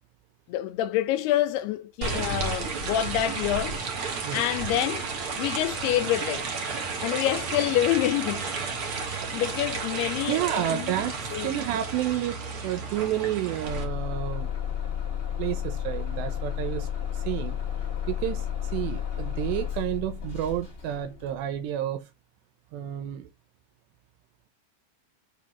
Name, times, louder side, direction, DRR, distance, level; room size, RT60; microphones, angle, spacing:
voice 1, 0.5-3.8 4.3-5.1 5.4-6.5 7.0-8.5 9.0-10.4 10.7-10.9 11.3-11.5, left 13 dB, 85° left, 2.4 m, -27 dB
sound 1, 2.0-13.8, right 4 dB, 50° right, 1.6 m, -32 dB
voice 2, 10.3-11.1 11.4-14.5 15.4-16.9 17.1-17.6 18.1-18.5 18.7-22.1 22.7-23.3, right 11 dB, 80° right, 2.9 m, -30 dB
Bus / Engine starting, 13.7-21.4, left 9 dB, 25° left, 1.2 m, -32 dB
6.2 x 5.2 x 5.7 m
omnidirectional pair, 5.0 m